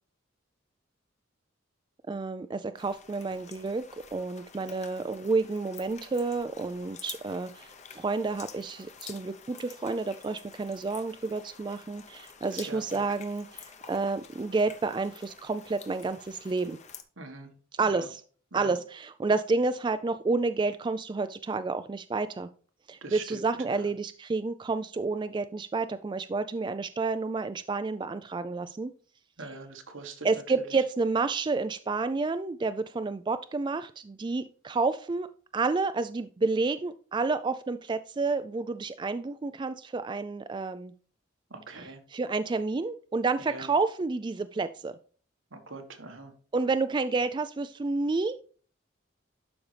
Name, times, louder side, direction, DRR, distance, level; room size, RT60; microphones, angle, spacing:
voice 1, 2.1-3.8 4.1-16.8 17.7-18.2 18.5-22.5 22.9-28.9 29.4-29.5 30.2-35.3 35.5-40.9 42.1-44.9 46.5-48.6, right 3 dB, 25° right, 11 dB, 0.3 m, -30 dB
sound 1, 2.8-17.0, left 7 dB, 35° left, 0.8 m, -49 dB
voice 2, 12.5-13.0 17.2-17.5 17.9-18.1 18.5-18.8 23.0-23.4 23.7-23.9 29.4-30.3 41.5-42.0 43.5-43.7 45.5-46.3, right 3 dB, 80° right, 5 dB, 1.5 m, -42 dB
12.0 x 5.3 x 3.3 m, 0.43 s
head